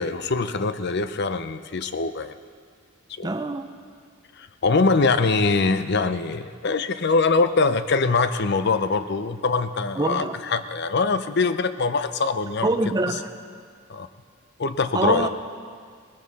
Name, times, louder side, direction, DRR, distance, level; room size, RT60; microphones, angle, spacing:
voice 1, 0.0-2.3 3.2-3.3 4.4-12.7 13.9-14.1 14.6-15.3, left 4 dB, 55° left, 11 dB, 0.6 m, -23 dB
voice 2, 3.2-3.7 9.9-10.4 12.6-13.3 14.9-15.3, right 2 dB, 20° right, 7 dB, 0.6 m, -24 dB
19.5 x 15.0 x 4.1 m, 2.1 s
head